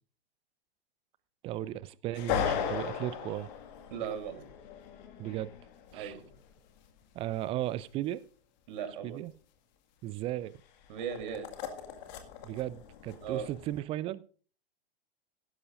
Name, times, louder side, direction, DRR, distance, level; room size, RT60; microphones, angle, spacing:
voice 1, 1.4-3.5 5.2-5.5 5.9-6.2 7.1-8.2 9.0-9.3 10.0-10.5 12.4-14.2, right 14 dB, 20° right, 19 dB, 0.4 m, -35 dB
sound 1, 2.1-6.8 10.8-13.8, left 8 dB, 45° left, 2.0 m, -38 dB
voice 2, 3.9-4.4 5.9-6.2 8.7-9.2 10.9-11.5 13.2-13.5, right 7 dB, 50° right, 7 dB, 3.3 m, -37 dB
15.5 x 12.5 x 2.5 m, 0.40 s
figure-of-eight pair, 105°, 30 cm